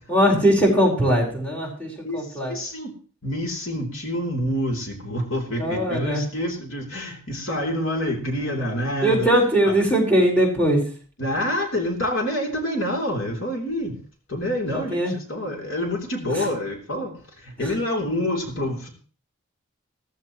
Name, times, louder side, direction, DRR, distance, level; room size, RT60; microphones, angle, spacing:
voice 1, 0.1-2.5 5.6-6.2 9.0-10.8 14.7-15.1 16.3-16.5 17.6-17.7, right 1 dB, 10° left, -3 dB, 4.5 m, -20 dB
voice 2, 2.0-2.9 3.2-9.3 9.6-9.7 11.2-14.0 14.3-15.0 15.3-17.1 17.4-18.9, left 1 dB, 75° left, 2 dB, 3.3 m, -27 dB
15.5 x 15.0 x 3.1 m, 0.39 s
head